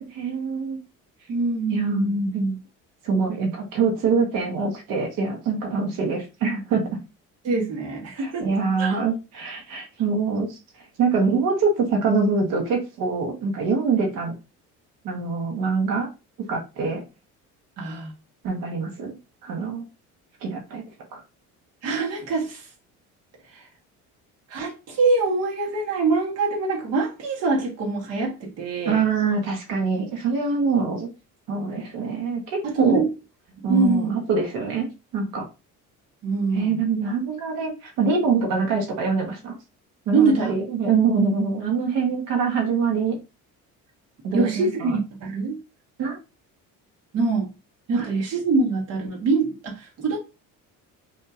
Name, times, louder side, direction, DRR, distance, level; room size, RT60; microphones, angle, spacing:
voice 1, 0.0-0.8 1.7-2.6 3.0-6.9 8.2-10.6 11.0-14.3 15.0-16.1 16.5-17.0 18.4-19.2 19.4-19.8 20.4-20.8 21.1-21.2 28.8-31.1 31.5-33.0 33.6-34.9 35.1-35.4 36.5-39.5 40.1-43.2 44.2-45.0 46.0-46.2 48.0-48.1, right 4 dB, 70° right, 1.3 m, -24 dB
voice 2, 1.3-2.2 7.4-8.5 8.8-9.0 17.8-18.1 21.8-22.7 23.5-23.7 24.5-29.0 32.6-33.1 33.7-34.1 36.2-36.8 40.1-40.5 44.3-45.6 47.1-47.5 47.9-50.2, right 3 dB, 50° right, 1.3 m, -24 dB
5.5 x 2.8 x 2.5 m
cardioid pair, 155°, 32 cm